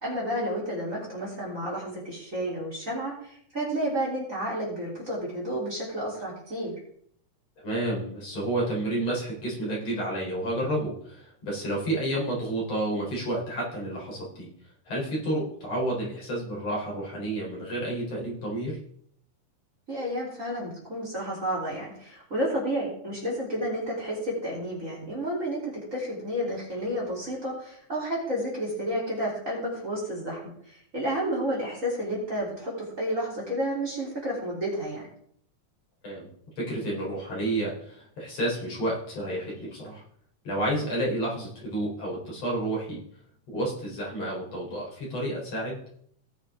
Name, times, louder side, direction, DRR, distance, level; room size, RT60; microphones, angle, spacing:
voice 1, 0.0-6.7 19.9-35.1, equal, 25° right, -4 dB, 3.5 m, -31 dB
voice 2, 7.6-14.5 14.9-18.8 36.0-36.3 36.6-40.0 40.4-43.0 43.5-45.8, right 1 dB, 55° left, -4 dB, 4.8 m, -30 dB
19.0 x 6.8 x 3.7 m, 0.65 s
omnidirectional pair, 3.5 m